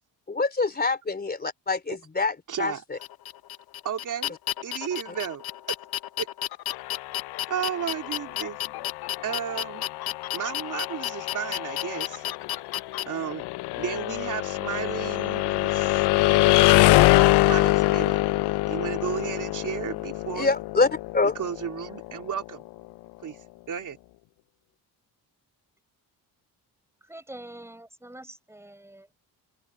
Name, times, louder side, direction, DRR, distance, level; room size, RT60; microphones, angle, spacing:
voice 1, 0.3-3.0 20.4-20.9 21.1-21.4, left 3 dB, 25° left, 3.6 m, -25 dB
voice 2, 2.5-2.8 3.8-4.3 4.6-5.4 6.2-6.3 7.5-8.6 9.2-9.9 10.3-12.2 13.0-13.4 13.8-16.7 17.5-18.2 18.7-20.5 21.3-22.6 23.2-24.0, right 8 dB, 50° right, 3.3 m, -33 dB
sound 1, 3.0-13.0, left 13 dB, 65° left, 0.9 m, -32 dB
sound 2, 6.7-22.5, left 19 dB, 90° left, 0.6 m, -25 dB
voice 3, 27.0-29.1, right 1 dB, 5° right, 4.7 m, -44 dB
open air
cardioid pair, 120°, 39 cm